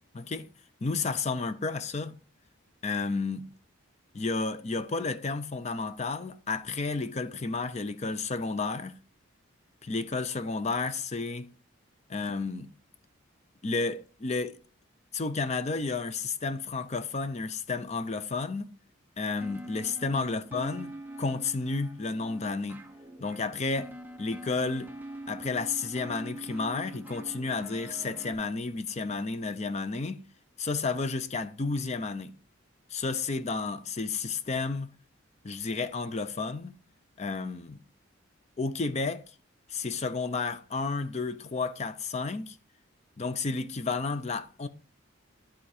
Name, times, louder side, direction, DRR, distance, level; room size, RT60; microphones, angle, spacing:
voice 1, 0.1-0.5 0.8-2.2 2.8-3.5 4.1-8.9 9.8-11.5 12.1-12.7 13.6-14.6 15.1-18.7 19.2-20.9 21.2-22.8 23.2-23.9 24.2-24.9 25.3-30.2 30.6-32.3 32.9-34.9 35.4-36.7 37.2-37.8 38.6-39.2 39.7-42.6 43.2-44.7, left 4 dB, 30° left, 0.5 m, -31 dB
sound 1, 19.4-28.3, right 1 dB, 10° right, 0.7 m, -44 dB
11.0 x 3.8 x 4.8 m
head